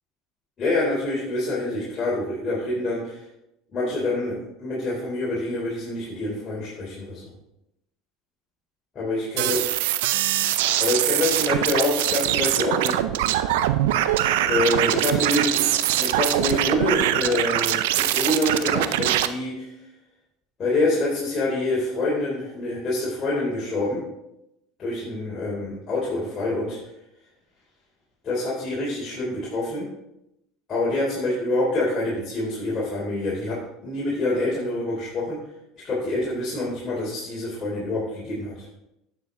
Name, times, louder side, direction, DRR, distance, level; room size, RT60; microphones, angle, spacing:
voice 1, 0.6-3.2 3.7-7.3 9.0-9.6 10.8-12.9 14.4-15.7 16.0-19.7 20.6-24.0 24.8-26.8 28.2-29.8 30.7-35.4 35.8-38.5, left 2 dB, 35° left, -7 dB, 3.6 m, -26 dB
sound 1, 9.4-19.3, right 13 dB, 75° right, 0.5 m, -23 dB
9.5 x 7.0 x 3.9 m, 0.84 s
hypercardioid pair, 85°, 0 cm